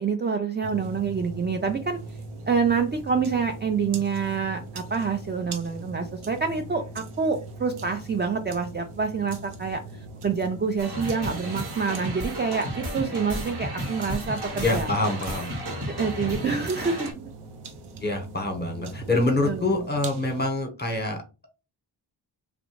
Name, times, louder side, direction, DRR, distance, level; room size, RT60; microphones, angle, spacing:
voice 1, 0.0-2.0 2.5-14.9 15.9-17.1 19.4-19.9, right 5 dB, 25° right, 5 dB, 0.3 m, -27 dB
sound 1, 0.6-20.4, right 3 dB, 90° right, 0.6 m, -41 dB
sound 2, 10.8-17.1, equal, 55° right, 1.1 m, -33 dB
voice 2, 14.6-15.5 18.0-21.2, left 2 dB, 20° left, 4 dB, 0.9 m, -25 dB
2.5 x 2.1 x 3.0 m, 0.30 s
cardioid pair, 55°, 49 cm